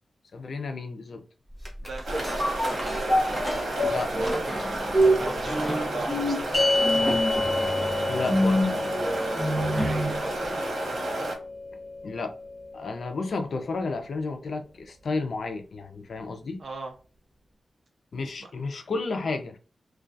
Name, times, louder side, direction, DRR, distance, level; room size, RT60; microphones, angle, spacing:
voice 1, 0.3-1.2 3.9-5.0 8.1-8.6 12.0-12.3 12.7-16.6 18.1-19.6, left 3 dB, 60° left, 0.4 m, -32 dB
sound 1, 1.6-10.2 10.6-10.7, equal, 5° right, 0.7 m, -27 dB
voice 2, 1.8-3.0 5.2-6.6 8.8-10.6 16.6-16.9 18.4-18.5, right 2 dB, 55° right, 0.6 m, -37 dB
sound 2, 2.0-11.3, right 1 dB, 90° right, 1.0 m, -32 dB
sound 3, 6.5-13.1, left 3 dB, 35° left, 0.9 m, -30 dB
2.3 x 2.2 x 2.5 m
wide cardioid pair, 135°, 0 cm